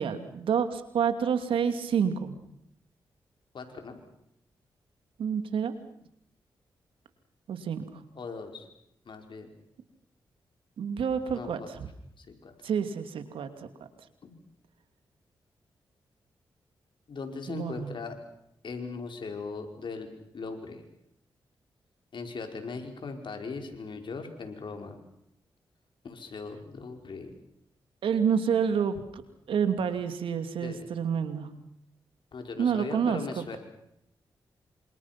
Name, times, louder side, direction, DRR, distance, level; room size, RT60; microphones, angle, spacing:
voice 1, 0.0-2.3 5.2-5.7 7.5-7.8 10.8-11.6 12.6-13.5 17.5-17.9 28.0-29.2 29.5-31.5 32.6-33.2, right 7 dB, 85° right, 9 dB, 2.7 m, -28 dB
voice 2, 3.5-4.0 8.2-8.7 9.1-9.5 11.3-11.7 12.2-12.5 14.2-14.3 17.1-18.2 18.6-20.1 20.3-20.8 22.1-25.0 26.0-27.3 30.6-30.9 32.3-33.6, left 4 dB, 65° left, 5 dB, 5.3 m, -39 dB
28.0 x 26.5 x 6.1 m, 0.74 s
cardioid pair, 55°, 9 cm